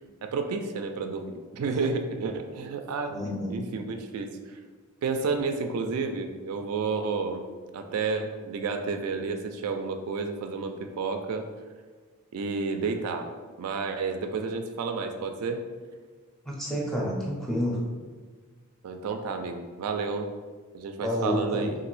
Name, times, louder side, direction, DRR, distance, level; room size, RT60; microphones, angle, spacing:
voice 1, 0.2-3.2 3.5-4.6 5.0-7.4 7.7-11.5 12.3-13.3 13.6-15.6 18.8-20.3 20.7-21.8, right 4 dB, 80° right, 5 dB, 0.3 m, -31 dB
voice 2, 3.1-3.5 16.5-17.8 21.0-21.7, equal, ahead, -4 dB, 0.5 m, -29 dB
2.9 x 2.5 x 3.1 m, 1.4 s
head